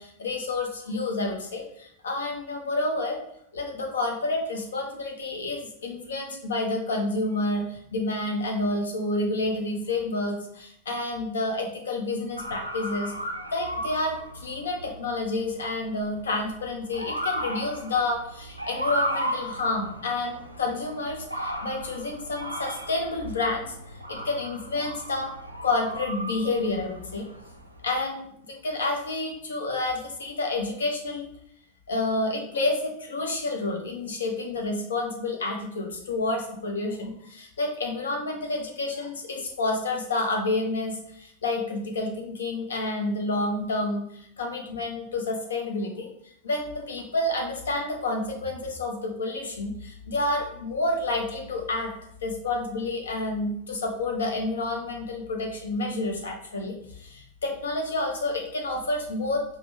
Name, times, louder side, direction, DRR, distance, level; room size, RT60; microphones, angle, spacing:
voice 1, 0.0-3.2 3.5-13.1 13.5-25.3 25.6-27.3 27.8-31.3 31.9-46.1 46.4-51.9 52.2-59.4, left 2 dB, 65° left, 2 dB, 0.8 m, -29 dB
Motor vehicle (road) / Siren, 12.4-27.9, equal, 90° right, 0.4 m, -36 dB
5.0 x 2.2 x 3.2 m, 0.72 s
figure-of-eight pair, 90°, 0 cm